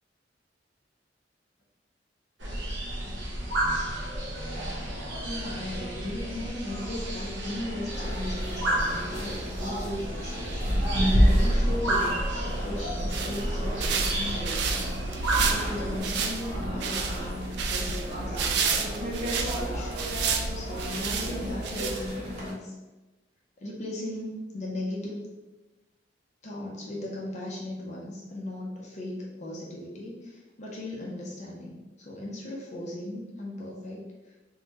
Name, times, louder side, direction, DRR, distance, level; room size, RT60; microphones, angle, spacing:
sound 1, 2.4-16.0, right 1 dB, 85° right, 0.8 m, -28 dB
voice 1, 5.2-10.6 11.1-14.9 15.4-19.9 20.5-22.7 23.6-25.3 26.4-34.0 34.3-34.4, left 1 dB, 40° left, -3 dB, 0.5 m, -37 dB
sound 2, 7.9-22.5, equal, 35° right, 0.9 m, -37 dB
sound 3, 12.9-22.4, right 5 dB, 65° right, 0.3 m, -31 dB
3.5 x 2.1 x 2.9 m, 1.1 s
head